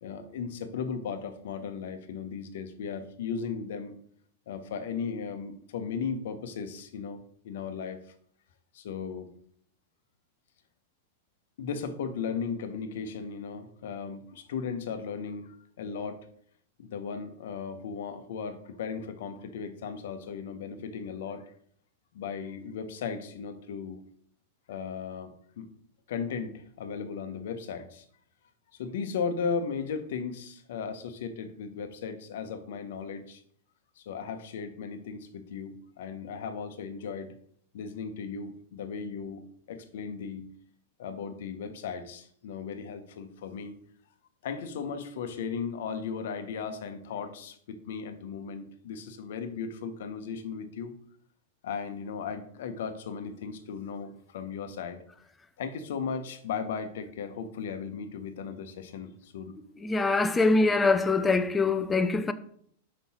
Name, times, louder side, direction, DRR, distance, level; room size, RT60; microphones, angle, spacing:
voice 1, 0.0-3.9 4.5-8.0 8.7-9.3 11.6-16.2 16.8-21.5 22.1-24.0 24.7-25.7 26.1-28.0 28.7-33.4 34.0-37.3 37.7-39.4 39.7-40.4 41.0-43.7 44.4-50.9 51.6-55.0 55.6-59.5, left 6 dB, 65° left, 0.9 m, -36 dB
voice 2, 59.8-62.3, left 3 dB, 15° left, 0.6 m, -24 dB
5.4 x 5.1 x 4.3 m
hypercardioid pair, 100°, 0 cm